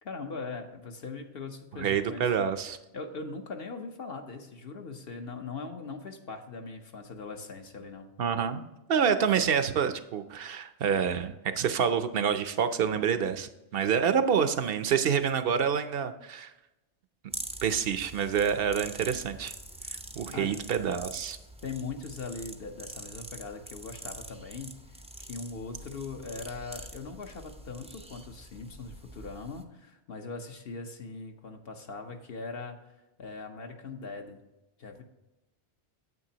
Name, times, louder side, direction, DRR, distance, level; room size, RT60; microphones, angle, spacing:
voice 1, 0.0-2.2 2.9-8.1 20.3-20.5 21.6-32.8 33.2-34.4 34.8-35.0, left 4 dB, 60° left, 4 dB, 1.1 m, -40 dB
voice 2, 1.7-2.8 8.2-16.5 17.6-19.5 20.2-21.4, right 7 dB, 60° right, 10 dB, 0.8 m, -27 dB
sound 1, 17.3-29.6, right 1 dB, 10° right, 0.4 m, -45 dB
9.4 x 8.1 x 2.9 m, 0.99 s
omnidirectional pair, 1.2 m